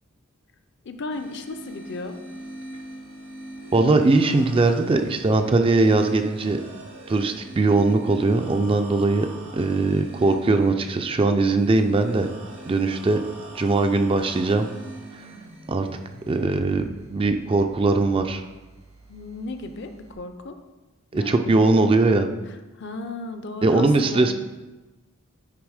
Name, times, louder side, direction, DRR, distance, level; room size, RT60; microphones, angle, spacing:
voice 1, 0.8-2.2 19.1-20.6 21.1-21.5 22.8-24.3, left 3 dB, 55° left, 8 dB, 0.5 m, -35 dB
sound 1, 1.1-20.1, right 1 dB, 85° right, 1.5 m, -43 dB
voice 2, 3.7-6.6 7.1-9.3 9.5-12.3 12.7-13.2 13.5-14.7 15.7-16.0 16.3-18.4 21.1-22.3 23.6-24.3, right 3 dB, 25° right, 7 dB, 0.3 m, -20 dB
9.6 x 3.4 x 4.8 m, 1.1 s
head